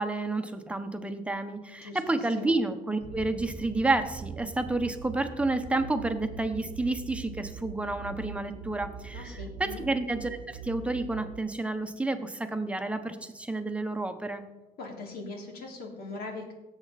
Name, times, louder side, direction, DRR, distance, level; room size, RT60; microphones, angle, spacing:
voice 1, 0.0-14.4, right 2 dB, 5° right, 7 dB, 1.1 m, -30 dB
sound 1, 3.0-11.4, right 6 dB, 55° right, 1.0 m, -42 dB
voice 2, 9.1-9.9 14.8-16.5, left 3 dB, 65° left, 1 dB, 3.2 m, -40 dB
17.0 x 7.2 x 4.2 m, 1.1 s
cardioid pair, 110°, 17 cm